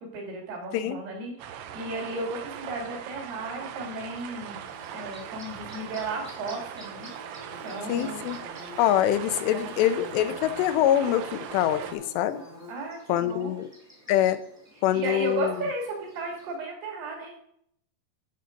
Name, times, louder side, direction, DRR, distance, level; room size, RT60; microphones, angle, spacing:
voice 1, 0.0-4.6 4.9-7.1 7.6-8.2 9.5-9.7 12.7-13.6 14.9-17.4, right 2 dB, 65° right, -2 dB, 4.4 m, -34 dB
sound 1, 1.4-11.9, right 9 dB, 85° right, 3.0 m, -40 dB
Bird / Buzz, 3.6-16.5, left 1 dB, 5° right, 1.3 m, -49 dB
voice 2, 7.9-8.4 8.8-12.4 13.1-13.7 14.1-14.4 14.8-15.5, left 11 dB, 85° left, 11 dB, 2.8 m, -24 dB
11.5 x 5.7 x 5.1 m, 0.70 s
omnidirectional pair, 4.9 m